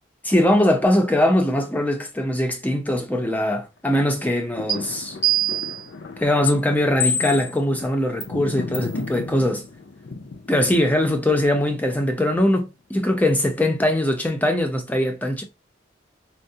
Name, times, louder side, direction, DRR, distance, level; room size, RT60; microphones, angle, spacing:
voice 1, 0.2-5.2 6.2-9.6 10.5-15.4, left 1 dB, 10° left, 0.5 m, -21 dB
sound 1, 4.1-12.4 12.9-13.0, left 3 dB, 65° left, 0.4 m, -37 dB
sound 2, 4.7-4.8 5.2-5.8 6.5-6.6 7.0-7.5 8.2-8.3 8.7-9.0, right 3 dB, 90° left, 1.4 m, -23 dB
4.5 x 2.0 x 2.6 m
head